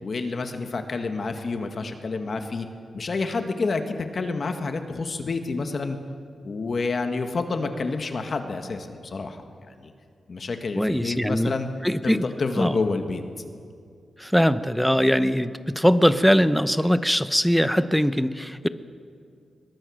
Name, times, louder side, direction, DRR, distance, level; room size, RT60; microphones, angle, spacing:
voice 1, 0.0-2.7 2.9-6.0 6.4-9.4 9.8-9.9 10.3-11.7 12.0-13.2, left 3 dB, 50° left, 6 dB, 1.8 m, -28 dB
voice 2, 10.8-11.5 11.8-12.2 12.6-12.8 14.2-15.5 15.8-18.7, equal, ahead, 12 dB, 0.8 m, -21 dB
22.0 x 22.0 x 6.5 m, 2.3 s
cardioid pair, 95°, 0 cm